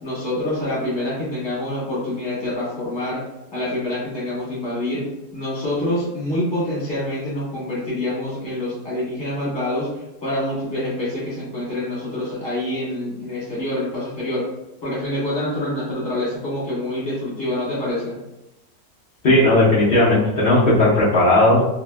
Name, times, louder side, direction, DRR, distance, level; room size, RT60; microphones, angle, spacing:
voice 1, 0.0-3.2 3.5-5.0 5.3-14.5 14.8-18.2, left 1 dB, 15° left, -9 dB, 1.1 m, -26 dB
voice 2, 19.2-21.6, left 1 dB, 75° left, -9 dB, 0.5 m, -15 dB
2.8 x 2.6 x 2.2 m, 0.94 s
omnidirectional pair, 1.9 m